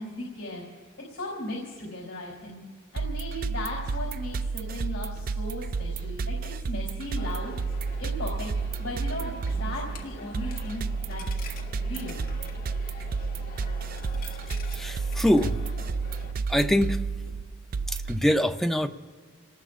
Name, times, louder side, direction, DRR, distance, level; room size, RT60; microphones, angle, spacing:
voice 1, 0.0-2.6 2.9-8.5 8.8-11.5 11.8-12.3, left 1 dB, 65° left, -2 dB, 3.7 m, -37 dB
sound 1, 3.0-18.2, right 4 dB, 45° right, 0.3 m, -31 dB
Coin (dropping), 7.2-16.3, left 3 dB, 45° left, 1.7 m, -46 dB
voice 2, 14.7-15.6 16.5-17.0 17.9-18.9, equal, ahead, 5 dB, 0.6 m, -24 dB
27.0 x 19.0 x 2.5 m, 1.5 s
head